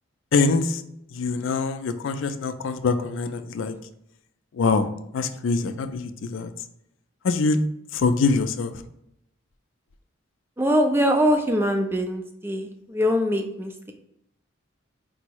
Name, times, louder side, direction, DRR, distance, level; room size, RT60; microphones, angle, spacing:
voice 1, 0.3-0.8 1.1-3.8 4.5-4.9 5.1-6.5 7.2-7.6 7.9-8.8, left 4 dB, 75° left, 9 dB, 0.4 m, -24 dB
voice 2, 10.6-13.9, equal, 10° right, 4 dB, 0.4 m, -23 dB
4.5 x 2.0 x 4.5 m, 0.79 s
head